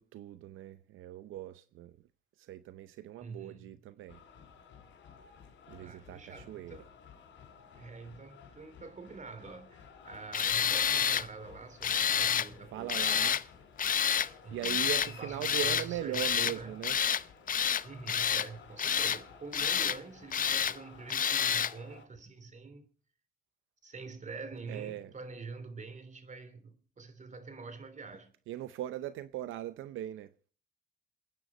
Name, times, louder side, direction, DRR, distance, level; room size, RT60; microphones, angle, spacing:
voice 1, 0.0-2.0 2.4-4.2 5.7-6.9 12.7-13.4 14.5-17.0 24.7-25.1 28.5-30.3, right 12 dB, 85° right, 0.7 m, -40 dB
voice 2, 3.2-3.7 5.7-6.9 7.8-13.3 14.4-16.8 17.8-22.9 23.8-28.3, right 4 dB, 40° right, 3.3 m, -46 dB
sound 1, 4.1-22.0, left 6 dB, 70° left, 4.1 m, -54 dB
Tools, 10.3-11.3 11.8-12.5 12.9-13.4 13.8-14.3 14.6-15.1 15.4-15.9 16.1-16.6 16.8-17.2 17.5-18.5 18.8-19.2 19.5-20.0 20.3-20.8 21.1-21.7, left 8 dB, 45° left, 0.7 m, -29 dB
27.5 x 9.3 x 4.2 m
cardioid pair, 90°, 20 cm